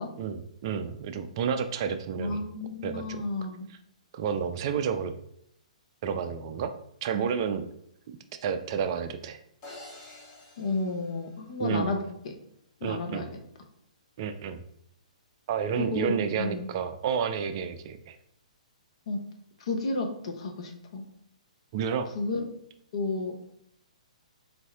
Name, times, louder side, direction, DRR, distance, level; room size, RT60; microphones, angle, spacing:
voice 1, 0.2-2.4 2.8-3.2 4.1-5.1 6.0-6.7 7.0-7.7 8.4-9.4 11.6-11.9 12.8-13.3 14.2-14.6 15.5-18.2 21.7-22.1, right 7 dB, 40° right, 8 dB, 0.4 m, -30 dB
voice 2, 2.2-3.7 10.6-12.1 12.8-13.3 15.7-16.7 19.1-19.2 19.6-21.0 22.1-22.4 22.9-23.4, left 3 dB, 55° left, 3 dB, 0.9 m, -32 dB
sound 1, 9.6-12.0, left 2 dB, 30° left, 1.3 m, -49 dB
4.1 x 2.6 x 3.5 m, 0.73 s
figure-of-eight pair, 125°, 4 cm